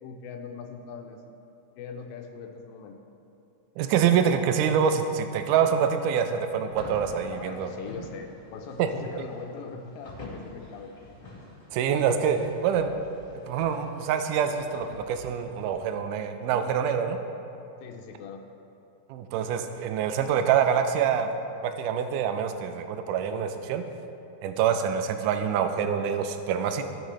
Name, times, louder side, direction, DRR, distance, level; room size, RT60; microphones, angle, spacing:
voice 1, 0.0-1.3 1.8-3.0 7.3-10.9 17.8-18.4, left 5 dB, 90° left, 3 dB, 2.4 m, -41 dB
voice 2, 3.8-7.7 8.8-8.9 11.7-12.9 13.3-17.2 19.1-21.3 21.6-23.8 24.4-26.8, right 7 dB, 80° right, 7 dB, 2.0 m, -26 dB
sound 1, 6.7-15.8, left 1 dB, 35° left, 0.5 m, -47 dB
15.0 x 6.5 x 3.2 m, 2.9 s
omnidirectional pair, 4.0 m